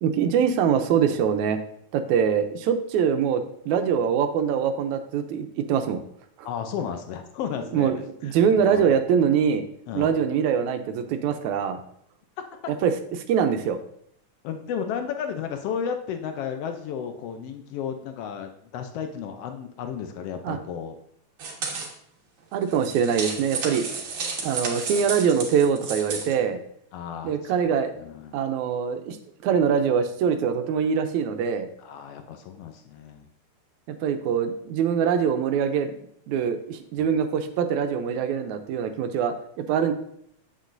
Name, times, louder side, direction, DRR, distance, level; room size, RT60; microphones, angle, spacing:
voice 1, 0.0-1.6 1.9-6.0 6.4-6.5 7.7-7.9 8.2-9.7 9.9-11.8 12.7-13.8 20.4-20.6 22.5-23.9 24.4-26.6 27.2-27.9 28.3-29.2 29.4-31.7 33.9-35.9 36.3-39.9, right 7 dB, 80° right, 8 dB, 2.0 m, -23 dB
voice 2, 6.4-7.9 8.2-8.8 9.9-10.2 12.6-12.7 14.4-21.0 26.9-28.4 31.8-33.3 37.0-37.2, left 7 dB, 85° left, 7 dB, 1.3 m, -33 dB
sound 1, 21.4-21.9 22.6-26.3, right 4 dB, 50° right, 1.7 m, -32 dB
8.3 x 7.7 x 2.5 m, 0.69 s
omnidirectional pair, 3.3 m